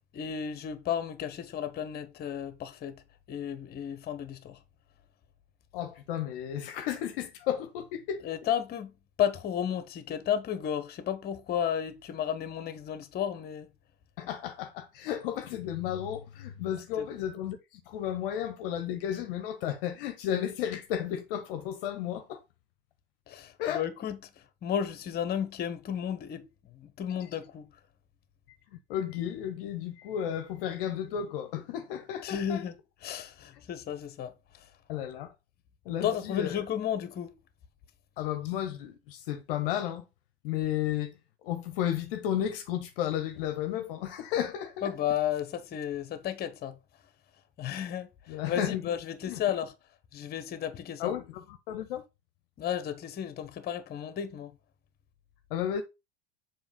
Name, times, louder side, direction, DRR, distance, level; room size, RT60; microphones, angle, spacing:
voice 1, 0.1-3.0 3.3-4.6 8.2-8.9 9.2-13.7 17.0-17.1 23.3-27.7 32.2-32.8 33.0-34.7 35.9-37.3 44.8-46.8 47.6-49.7 50.1-51.1 52.6-54.6, left 9 dB, 30° left, 1.0 m, -33 dB
voice 2, 5.7-8.2 14.2-22.4 23.6-23.8 28.9-32.6 34.9-35.3 35.9-36.5 38.2-40.0 40.4-41.1 41.4-44.9 48.3-48.8 49.3-49.4 51.0-52.0 55.5-55.8, left 10 dB, 55° left, 0.8 m, -33 dB
7.1 x 3.0 x 5.2 m
figure-of-eight pair, 80°, 33 cm